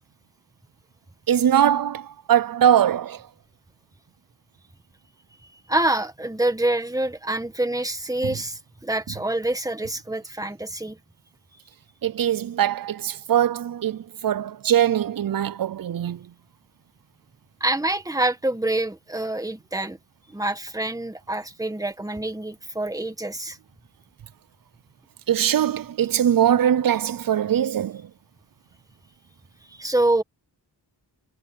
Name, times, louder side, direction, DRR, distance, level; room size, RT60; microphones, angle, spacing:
voice 1, 1.3-3.2 12.0-16.2 25.3-28.0, right 10 dB, 55° right, 0.6 m, -21 dB
voice 2, 5.7-11.0 17.6-20.0 20.3-23.6 29.7-30.2, right 1 dB, 10° right, 1.8 m, -26 dB
wide cardioid pair, 95°, 41 cm